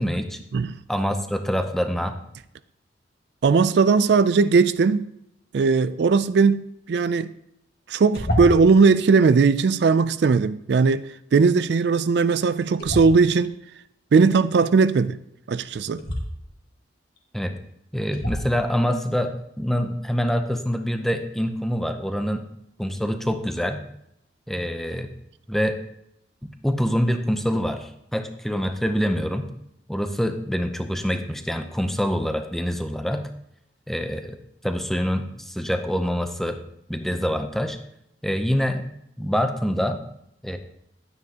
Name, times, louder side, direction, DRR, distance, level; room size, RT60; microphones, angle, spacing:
voice 1, 0.0-0.4 0.9-2.2 17.3-17.5 17.9-22.5 22.8-23.8 24.5-25.1 25.5-25.8 26.4-29.5 29.9-33.3 33.9-34.4 34.6-36.6 36.9-37.8 38.2-38.9 39.2-40.0 40.4-40.6, equal, ahead, 0.6 m, -25 dB
voice 2, 3.4-5.0 5.5-7.3 7.9-13.5 14.1-15.2 15.5-16.0, right 4 dB, 60° right, 0.3 m, -18 dB
sound 1, 8.1-8.8 12.8-13.5 16.0-16.2 17.2-17.3 18.1-18.6, left 1 dB, 55° left, 1.8 m, -27 dB
11.5 x 9.4 x 2.9 m
head